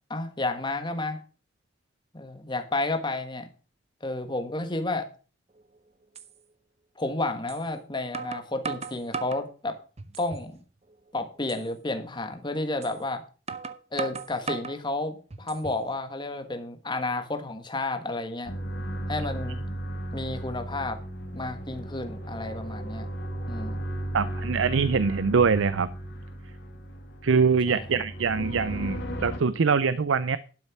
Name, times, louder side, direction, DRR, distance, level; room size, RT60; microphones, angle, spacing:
voice 1, 0.1-1.2 2.1-3.5 4.0-5.1 7.0-9.8 10.2-10.6 11.1-13.2 13.9-18.5 19.1-19.6 20.1-21.0 21.3-23.1 23.5-23.8 27.7-28.0, left 2 dB, 25° left, 7 dB, 1.4 m, -31 dB
sound 1, 5.6-5.7 6.2-6.3 7.5-7.6 8.1-9.5 10.0-10.5 10.9-11.0 11.5-11.7 12.8-13.0 13.5-14.8 15.3-15.9, right 5 dB, 35° right, 0.8 m, -36 dB
sound 2, 18.5-29.4, right 1 dB, 60° left, 2.2 m, -35 dB
voice 2, 24.1-25.9 27.2-30.4, right 5 dB, 85° right, 16 dB, 0.5 m, -23 dB
12.0 x 6.6 x 6.0 m, 0.37 s
head